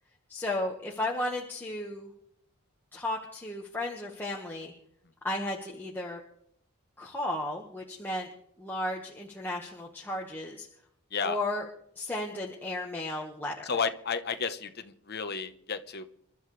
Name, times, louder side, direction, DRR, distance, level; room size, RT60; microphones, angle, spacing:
voice 1, 0.3-2.1 2.9-4.7 5.2-6.2 7.0-8.3 8.6-10.7 11.2-11.7 11.9-13.6, left 1 dB, 10° left, -2 dB, 1.6 m, -34 dB
voice 2, 13.6-16.0, left 5 dB, 45° left, 9 dB, 1.1 m, -32 dB
29.0 x 13.0 x 3.4 m, 0.72 s
head